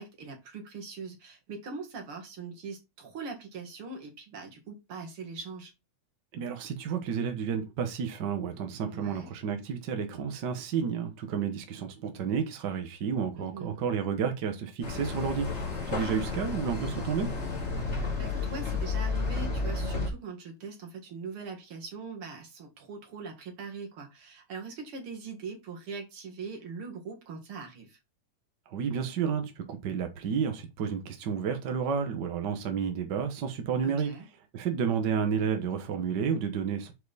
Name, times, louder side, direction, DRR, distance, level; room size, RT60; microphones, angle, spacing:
voice 1, 0.0-5.7 8.8-9.3 13.4-13.8 17.9-28.0 33.8-34.3, right 4 dB, 50° right, 2.5 m, -41 dB
voice 2, 6.3-15.5 15.9-17.3 28.7-34.1 34.5-36.9, right 7 dB, 65° right, 1.0 m, -31 dB
sound 1, 14.8-20.1, left 3 dB, 25° left, 2.1 m, -32 dB
7.2 x 4.8 x 4.0 m
omnidirectional pair, 3.5 m